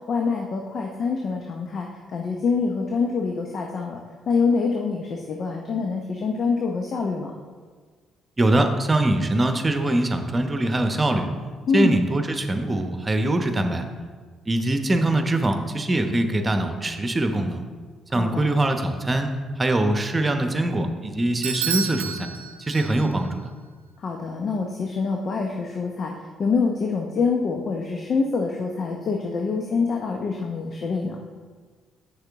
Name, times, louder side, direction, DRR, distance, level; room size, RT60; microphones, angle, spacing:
voice 1, 0.1-4.0 4.3-7.3 11.7-12.0 18.1-18.4 24.0-26.1 26.4-31.2, left 4 dB, 55° left, 2 dB, 0.8 m, -25 dB
voice 2, 8.4-11.3 11.7-13.8 14.5-17.6 18.1-22.3 22.6-23.4, right 1 dB, 30° right, 6 dB, 1.0 m, -23 dB
Bell / Doorbell, 21.4-23.3, right 8 dB, 90° right, 0.4 m, -30 dB
8.0 x 6.6 x 3.6 m, 1.5 s
hypercardioid pair, 50°, 0 cm